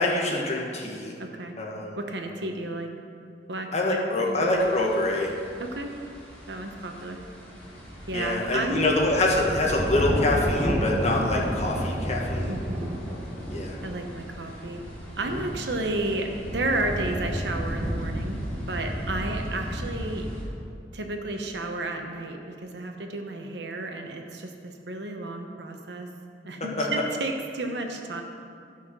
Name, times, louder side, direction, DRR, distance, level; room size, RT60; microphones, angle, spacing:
voice 1, 0.0-1.2 1.6-1.9 3.7-5.3 8.1-12.5 13.5-13.8 26.8-26.9, left 2 dB, 40° left, -2 dB, 1.4 m, -25 dB
voice 2, 1.2-1.6 2.0-2.9 3.5-4.4 5.6-5.9 6.5-7.2 8.1-8.9 12.5-13.0 13.8-14.8 15.2-18.4 18.7-20.3 20.9-26.1 26.4-28.2, right 2 dB, 75° right, 3 dB, 1.0 m, -32 dB
sound 1, 4.3-20.4, equal, 5° left, 2.7 m, -32 dB
12.5 x 5.8 x 6.1 m, 2.4 s
head